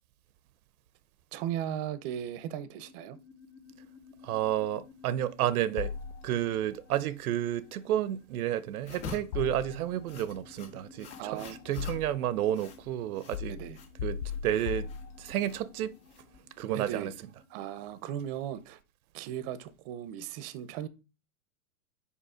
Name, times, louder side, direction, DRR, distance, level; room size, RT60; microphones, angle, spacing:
voice 1, 1.3-3.2 11.2-11.8 13.4-13.8 16.7-17.1 17.5-18.8 19.1-20.9, right 10 dB, 40° right, 0.7 m, -37 dB
sound 1, 1.8-18.0, left 5 dB, 70° left, 2.0 m, -58 dB
voice 2, 4.2-5.9 6.2-13.6 14.0-14.9 15.2-15.9 16.6-17.1, right 12 dB, 80° right, 0.7 m, -31 dB
sound 2, 5.8-6.7 9.3-10.2 11.1-12.4 13.3-15.6, left 8 dB, 90° left, 0.6 m, -38 dB
sound 3, 8.8-16.7, left 5 dB, 50° left, 1.9 m, -47 dB
5.5 x 4.9 x 4.9 m
supercardioid pair, 145°, 43 cm